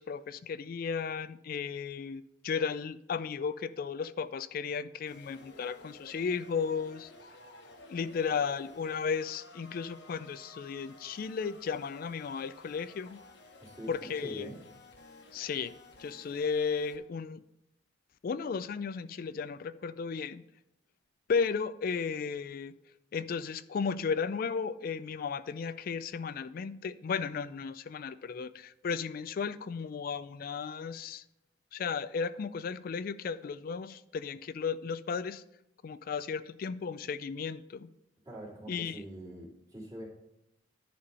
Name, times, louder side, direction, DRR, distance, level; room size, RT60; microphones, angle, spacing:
voice 1, 0.0-7.1 7.9-13.2 13.9-14.5 15.3-15.7 16.0-17.4 18.2-20.4 21.3-22.7 23.1-31.2 31.7-35.4 35.8-37.9 38.7-39.0, left 5 dB, 50° left, 0.3 m, -34 dB
sound 1, 5.1-17.0, left 2 dB, 65° left, 1.1 m, -54 dB
voice 2, 13.6-14.6 38.2-40.1, right 1 dB, 20° right, 2.5 m, -44 dB
10.5 x 4.2 x 5.4 m
head